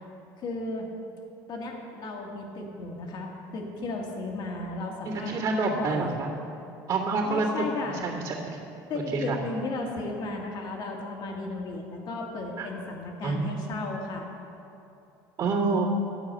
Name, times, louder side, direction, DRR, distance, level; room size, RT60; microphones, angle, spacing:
voice 1, 0.4-0.9 1.5-5.4 5.8-6.2 7.2-8.6 8.9-14.3, left 2 dB, 50° left, 1 dB, 1.7 m, -35 dB
voice 2, 5.0-6.3 6.9-8.4 9.3-9.4 12.6-12.7 13.2-13.7 15.4-15.8, right 3 dB, 55° right, -11 dB, 2.1 m, -27 dB
11.0 x 4.8 x 7.7 m, 2.8 s
supercardioid pair, 95°, 9 cm